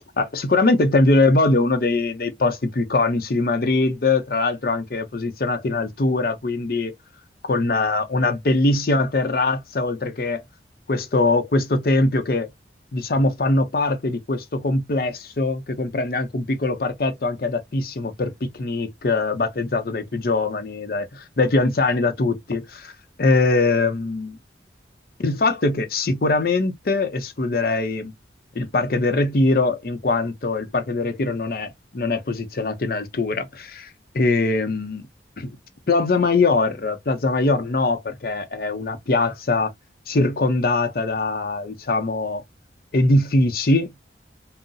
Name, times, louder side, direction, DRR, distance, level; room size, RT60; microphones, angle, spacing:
voice 1, 0.0-6.9 7.5-10.4 10.9-12.5 12.9-22.9 23.2-24.4 25.2-28.1 28.5-33.9 34.1-35.0 35.4-35.5 35.9-39.7 40.1-42.4 42.9-43.9, left 2 dB, 50° left, 0.6 m, -22 dB
3.8 x 2.0 x 2.5 m
head